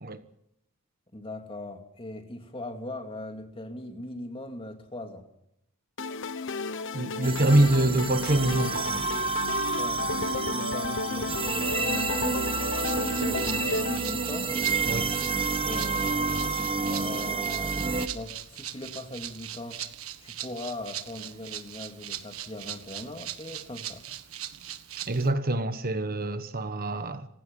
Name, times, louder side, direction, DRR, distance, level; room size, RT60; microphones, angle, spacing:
voice 1, 1.1-5.3 9.8-12.4 12.9-14.5 15.7-17.8 18.1-19.9 20.2-24.0, left 1 dB, 25° left, 2.6 m, -40 dB
sound 1, 6.0-14.0, left 4 dB, 60° left, 1.1 m, -33 dB
voice 2, 6.9-9.3 14.8-15.1 25.1-27.3, right 1 dB, 40° right, 1.3 m, -25 dB
sound 2, 7.2-18.1, right 4 dB, 25° right, 1.1 m, -29 dB
Rattle (instrument), 12.8-25.3, right 11 dB, 70° right, 1.6 m, -41 dB
29.0 x 16.5 x 5.4 m
head